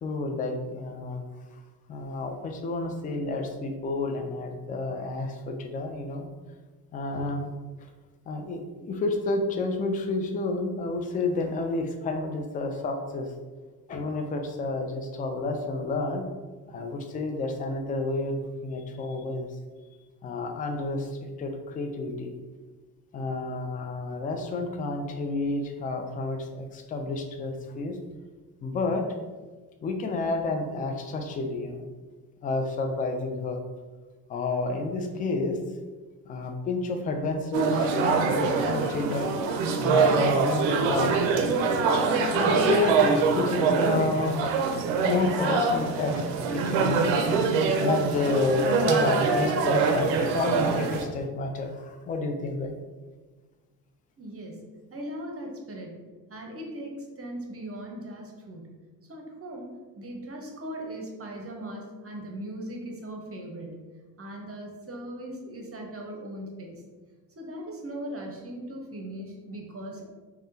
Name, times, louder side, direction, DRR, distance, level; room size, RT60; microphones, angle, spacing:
voice 1, 0.0-1.2 1.9-6.3 6.9-7.4 8.3-13.3 13.9-16.2 16.7-18.3 18.6-19.5 20.2-21.1 21.4-22.3 23.1-28.0 28.6-29.0 29.8-31.9 32.4-33.6 34.3-35.6 36.3-39.3 39.8-41.3 42.3-44.4 45.0-46.2 46.5-47.1 47.8-52.7, left 3 dB, 20° left, 5 dB, 0.3 m, -30 dB
sound 1, 37.5-51.1, right 4 dB, 65° right, 0.5 m, -24 dB
voice 2, 54.2-58.8 59.1-59.7 59.9-63.8 64.2-66.8 67.3-70.0, right 1 dB, 30° right, 1 dB, 0.8 m, -39 dB
3.4 x 2.2 x 2.7 m, 1.3 s
hypercardioid pair, 40°, 49 cm